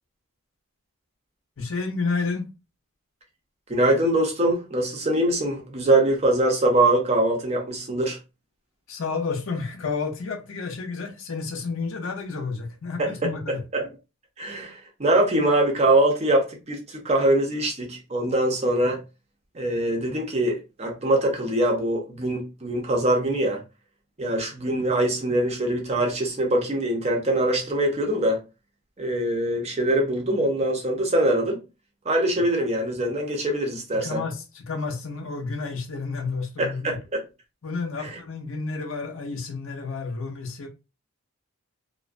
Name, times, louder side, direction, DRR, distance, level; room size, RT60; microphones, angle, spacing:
voice 1, 1.6-2.5 8.9-13.6 34.0-37.0 37.6-40.7, left 4 dB, 65° left, 0.6 m, -30 dB
voice 2, 3.7-8.2 13.0-13.3 13.7-13.9 14.4-19.0 19.5-23.6 24.2-28.4 29.0-31.6 32.1-34.2 36.6-37.2 38.0-38.2, right 1 dB, 30° right, 0.5 m, -23 dB
2.3 x 2.1 x 2.4 m
head